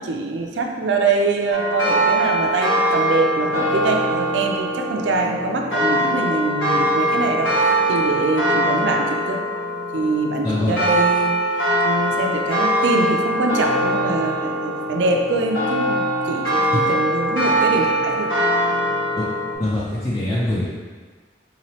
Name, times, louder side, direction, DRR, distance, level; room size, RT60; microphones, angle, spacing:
voice 1, 0.0-9.4 9.9-18.3, right 3 dB, 70° right, 2 dB, 0.4 m, -24 dB
sound 1, 1.5-19.6, right 1 dB, 75° left, 1.1 m, -22 dB
voice 2, 10.4-10.8 19.2-19.3 19.6-20.7, left 1 dB, 20° left, -8 dB, 0.4 m, -23 dB
4.0 x 2.8 x 3.0 m, 1.5 s
head